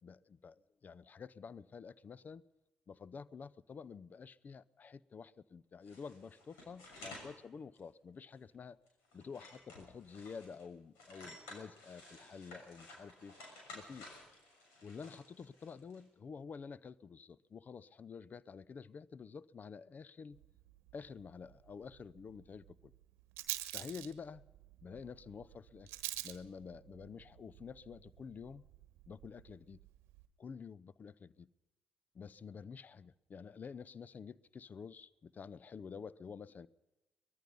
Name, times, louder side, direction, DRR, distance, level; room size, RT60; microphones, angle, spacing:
voice 1, 0.0-2.4 2.9-8.8 9.1-13.4 13.7-14.1 14.8-20.4 20.9-22.9 23.7-24.4 24.8-25.9 26.2-28.7 29.1-29.8 30.4-31.5 32.1-36.7, left 6 dB, 40° left, 0.7 m, -49 dB
sound 1, 5.8-7.4 7.7-7.8 8.4-8.5 8.9-10.6 11.0-16.0, left 2 dB, 70° left, 6.6 m, -54 dB
Rattle, 20.3-30.3, right 17 dB, 70° right, 1.1 m, -49 dB
23.5 x 20.5 x 5.4 m
figure-of-eight pair, 45°, 4 cm